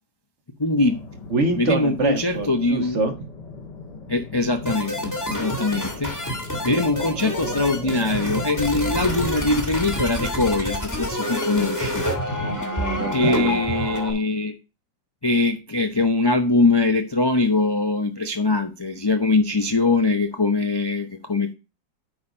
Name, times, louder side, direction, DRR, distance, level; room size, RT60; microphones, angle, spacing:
voice 1, 0.6-1.0 1.6-3.0 4.1-6.1 6.6-12.1 13.1-14.5 15.2-21.5, left 3 dB, 35° left, 5 dB, 0.4 m, -22 dB
sound 1, 0.8-9.7, left 3 dB, 70° left, 2.3 m, -38 dB
voice 2, 1.3-3.3 12.4-13.6, right 3 dB, 45° right, 6 dB, 1.6 m, -25 dB
sound 2, 4.7-14.1, left 1 dB, 10° left, 1.6 m, -28 dB
9.3 x 4.4 x 5.1 m, 0.29 s
omnidirectional pair, 1.9 m